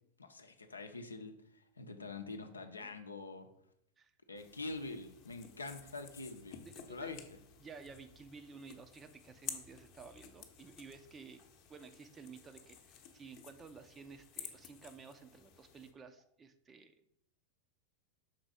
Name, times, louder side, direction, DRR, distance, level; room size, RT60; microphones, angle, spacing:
voice 1, 0.2-3.5 4.3-7.2, left 3 dB, 75° left, 7 dB, 0.6 m, -45 dB
sound 1, 4.4-15.9, left 8 dB, 40° left, 0.9 m, -53 dB
voice 2, 6.6-7.2 7.6-11.4 11.7-17.1, right 5 dB, 20° right, 9 dB, 0.6 m, -53 dB
5.9 x 4.0 x 4.9 m, 0.73 s
figure-of-eight pair, 90°, 0 cm